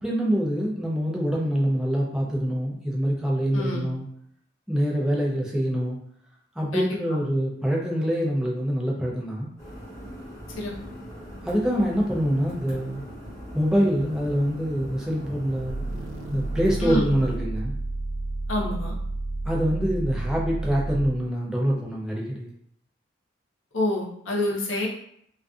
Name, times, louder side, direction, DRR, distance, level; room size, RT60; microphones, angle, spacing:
voice 1, 0.0-4.1 4.7-6.0 6.6-9.5 11.4-13.0 13.5-15.8 16.3-17.7 19.4-22.5, equal, 5° right, -3 dB, 0.3 m, -25 dB
voice 2, 3.5-3.9 6.7-6.9 10.5-10.7 16.8-17.1 18.5-18.9 23.7-24.9, left 1 dB, 85° left, -3 dB, 0.7 m, -27 dB
sound 1, 9.6-17.4, equal, 15° left, 0.9 m, -41 dB
sound 2, 15.7-21.3, right 2 dB, 85° right, 0.3 m, -31 dB
2.5 x 2.4 x 2.3 m, 0.68 s
head